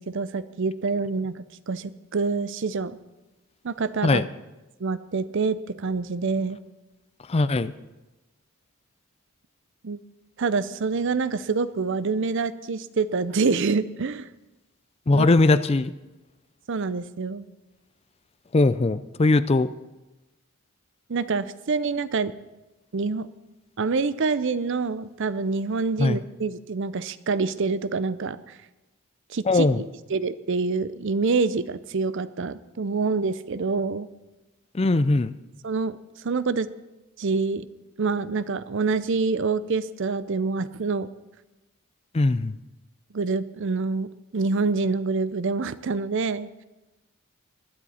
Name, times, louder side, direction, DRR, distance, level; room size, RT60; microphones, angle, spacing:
voice 1, 0.0-3.0 3.6-4.2 4.8-6.6 9.8-10.0 10.4-14.3 15.1-15.3 16.7-17.4 21.1-22.3 22.9-23.3 23.8-28.4 29.3-29.8 30.1-34.1 35.6-36.0 36.2-36.7 37.2-37.7 38.0-41.1 43.1-46.5, right 4 dB, 55° right, 15 dB, 0.5 m, -26 dB
voice 2, 7.3-7.7 15.1-15.9 18.5-19.7 26.0-26.2 29.5-29.8 34.7-35.3 42.1-42.6, left 2 dB, 25° left, 14 dB, 0.4 m, -20 dB
20.0 x 10.0 x 4.3 m, 1.1 s
head